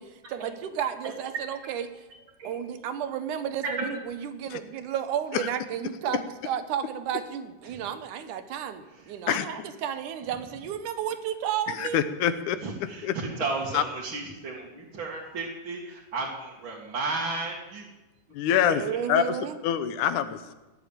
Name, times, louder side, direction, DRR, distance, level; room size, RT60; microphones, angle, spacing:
voice 1, 0.0-1.9 2.4-12.0 18.6-19.6, right 9 dB, 80° right, 10 dB, 2.6 m, -32 dB
voice 2, 11.8-12.6 13.0-13.1 13.7-13.8 18.3-18.8 19.1-19.4 19.6-20.5, left 9 dB, 75° left, 11 dB, 2.3 m, -25 dB
voice 3, 12.6-17.9, right 3 dB, 45° right, -4 dB, 2.4 m, -33 dB
19.0 x 7.3 x 8.8 m, 1.1 s
omnidirectional pair, 3.6 m